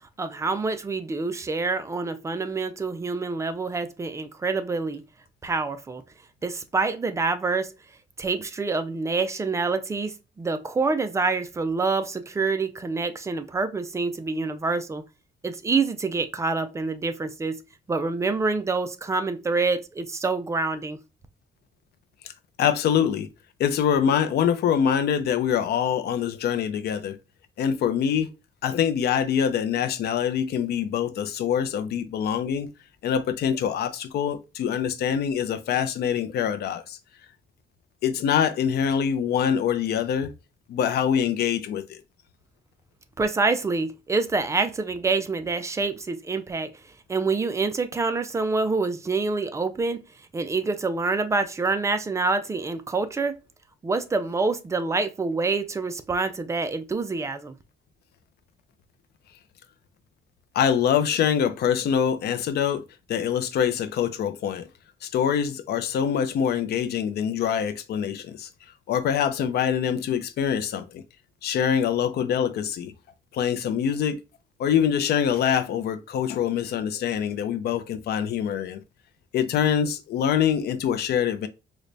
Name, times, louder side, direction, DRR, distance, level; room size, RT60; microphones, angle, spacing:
voice 1, 0.2-5.0 5.4-6.0 6.4-7.7 8.2-15.0 15.4-17.6 17.9-21.0 43.2-46.7 47.1-50.0 50.3-53.3 53.8-57.6, right 3 dB, 15° right, 0.3 m, -26 dB
voice 2, 22.6-23.3 23.6-27.2 27.6-28.3 28.6-32.7 33.0-37.0 38.0-40.3 40.7-42.0 60.5-62.8 63.1-64.7 65.0-68.5 68.9-71.0 71.4-72.9 73.3-74.2 74.6-78.8 79.3-81.5, left 8 dB, 65° left, 0.5 m, -24 dB
3.9 x 2.1 x 3.2 m
cardioid pair, 155°, 18 cm